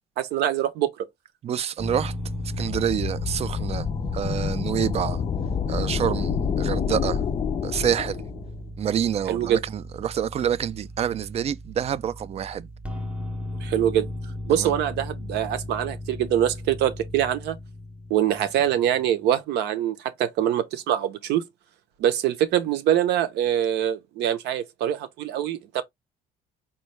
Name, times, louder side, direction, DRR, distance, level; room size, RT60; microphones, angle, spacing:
voice 1, 0.2-0.9 9.3-9.6 13.6-14.1 14.5-17.6 18.1-21.4 22.0-25.8, right 11 dB, 80° right, 0.7 m, -24 dB
voice 2, 1.4-2.1 2.6-3.9 4.1-5.2 5.7-7.2 7.6-8.2 8.8-12.7 14.5-14.8, right 9 dB, 40° right, 0.3 m, -27 dB
sound 1, 1.8-19.1, left 1 dB, 5° right, 0.7 m, -36 dB
sound 2, 2.2-8.6, left 7 dB, 30° left, 0.4 m, -29 dB
4.4 x 2.2 x 3.1 m
cardioid pair, 110°, 17 cm